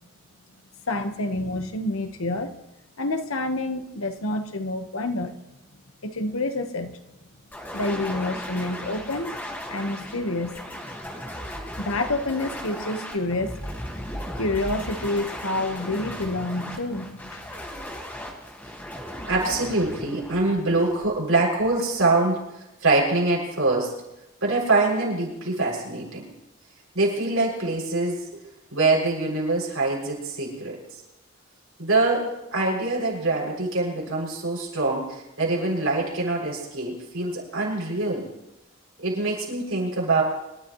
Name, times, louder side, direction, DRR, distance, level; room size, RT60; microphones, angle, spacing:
voice 1, 0.9-2.5 3.0-5.3 6.0-7.0 7.7-9.4 9.7-10.6 11.7-13.6 14.4-17.6, left 2 dB, 85° left, 7 dB, 1.3 m, -28 dB
sound 1, 7.5-21.4, equal, 10° left, 1.9 m, -36 dB
voice 2, 19.2-24.0 24.4-26.3 26.9-28.4 28.7-30.8 31.8-38.3 39.0-40.2, right 2 dB, 85° right, -3 dB, 6.9 m, -24 dB
26.5 x 12.5 x 3.2 m, 0.91 s
head